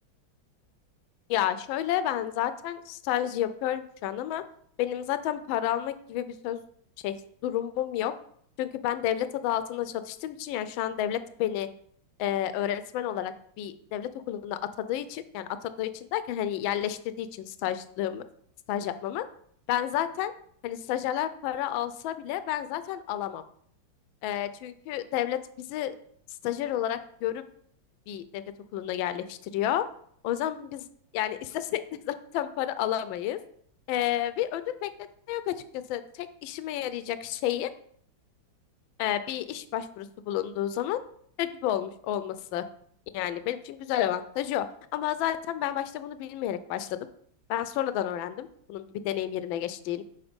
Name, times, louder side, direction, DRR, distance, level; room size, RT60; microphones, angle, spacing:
voice 1, 1.3-4.4 4.8-6.6 7.0-7.1 7.4-8.1 8.6-11.7 12.2-14.6 14.9-18.2 18.7-19.2 19.7-20.3 20.6-23.4 24.2-25.9 26.4-27.4 28.1-28.4 28.7-29.9 30.2-30.9 31.1-31.8 32.1-33.4 33.9-37.7 39.0-41.0 41.4-42.6 43.1-44.7 44.9-47.0 47.5-50.0, left 11 dB, 80° left, 12 dB, 1.3 m, -30 dB
7.0 x 4.7 x 5.1 m, 0.65 s
omnidirectional pair, 2.2 m